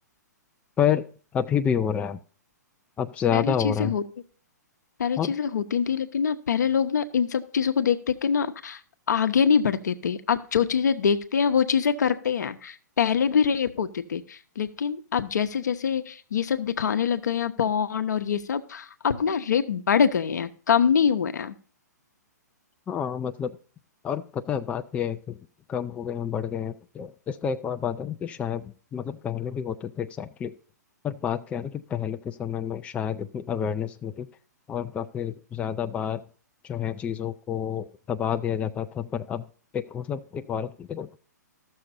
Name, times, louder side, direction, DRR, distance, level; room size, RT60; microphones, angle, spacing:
voice 1, 0.8-1.1 1.3-2.2 3.0-3.9 5.2-5.3 22.9-23.5 24.0-25.4 25.7-30.5 31.0-34.3 34.7-36.2 36.6-39.4 39.7-41.2, left 8 dB, 15° left, 7 dB, 0.4 m, -29 dB
voice 2, 3.3-4.0 5.0-8.8 9.1-21.5, left 7 dB, 70° left, 9 dB, 0.8 m, -24 dB
13.5 x 6.5 x 4.2 m, 0.40 s
figure-of-eight pair, 120°, 10 cm